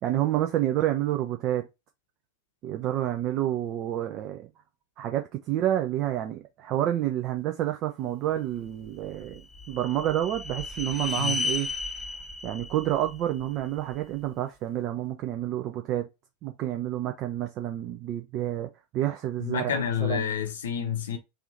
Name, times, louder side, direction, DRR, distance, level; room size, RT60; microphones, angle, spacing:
voice 1, 0.0-1.7 2.6-4.5 5.0-11.7 12.4-16.1 16.4-20.3, right 12 dB, 40° right, 0.5 m, -29 dB
sound 1, 8.8-14.0, left 3 dB, 5° right, 0.9 m, -34 dB
voice 2, 19.4-21.2, left 7 dB, 65° left, 0.7 m, -29 dB
3.5 x 2.6 x 4.2 m
figure-of-eight pair, 85°, 0 cm